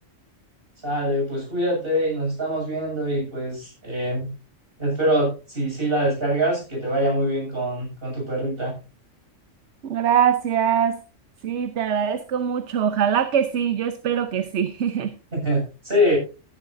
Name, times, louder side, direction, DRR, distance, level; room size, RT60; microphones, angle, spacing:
voice 1, 0.8-4.3 4.8-8.8 15.3-16.2, equal, 45° right, -1 dB, 7.5 m, -24 dB
voice 2, 9.8-11.0 11.4-15.1, right 8 dB, 65° right, 10 dB, 1.1 m, -22 dB
16.0 x 11.5 x 2.7 m, 0.31 s
omnidirectional pair, 1.3 m